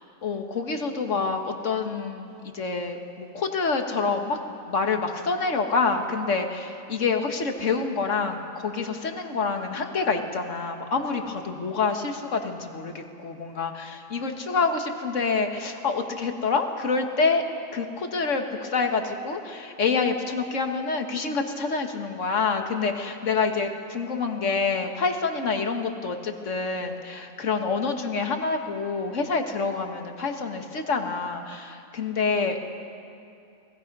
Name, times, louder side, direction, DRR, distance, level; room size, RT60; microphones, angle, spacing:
voice 1, 0.2-4.4 4.7-17.4 17.7-32.8, left 4 dB, 60° left, 5 dB, 1.9 m, -27 dB
29.0 x 20.0 x 5.5 m, 2.6 s
omnidirectional pair, 1.5 m